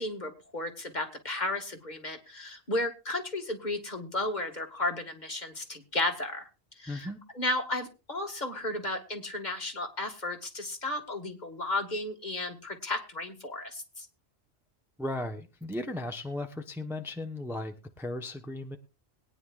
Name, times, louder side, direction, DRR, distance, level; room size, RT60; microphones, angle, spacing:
voice 1, 0.0-6.5 6.8-7.1 7.4-14.1, left 2 dB, 40° left, 4 dB, 2.0 m, -33 dB
voice 2, 6.9-7.2 15.0-18.8, left 1 dB, ahead, 5 dB, 0.9 m, -36 dB
22.0 x 9.8 x 2.5 m, 0.29 s
omnidirectional pair, 1.1 m